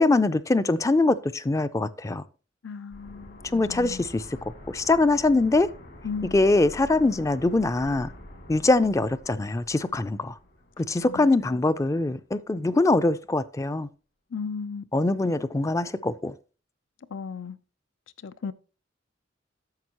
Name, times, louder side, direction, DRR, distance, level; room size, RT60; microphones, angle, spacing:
voice 1, 0.0-2.2 3.5-4.2 4.7-5.7 6.3-8.1 8.5-10.3 10.8-13.9 14.9-16.3, left 2 dB, 15° left, 0.4 m, -23 dB
voice 2, 2.6-4.0 6.0-6.4 11.0-11.6 14.3-14.8 17.1-17.6 18.2-18.5, left 5 dB, 85° left, 0.5 m, -36 dB
sound 1, 2.9-11.6 11.9-12.0, left 1 dB, 65° left, 2.5 m, -46 dB
10.5 x 7.1 x 2.9 m
head